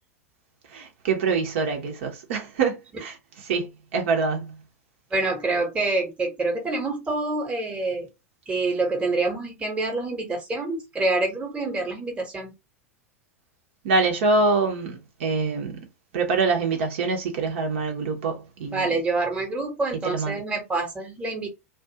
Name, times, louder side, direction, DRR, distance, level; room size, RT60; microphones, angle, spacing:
voice 1, 0.7-3.2 3.4-4.6 13.8-15.8 16.1-18.9 20.1-20.4, right 4 dB, 55° right, 0.9 m, -25 dB
voice 2, 5.1-8.1 8.5-12.5 18.7-21.5, right 3 dB, 15° right, 1.1 m, -26 dB
2.5 x 2.4 x 2.8 m
figure-of-eight pair, 90°, 8 cm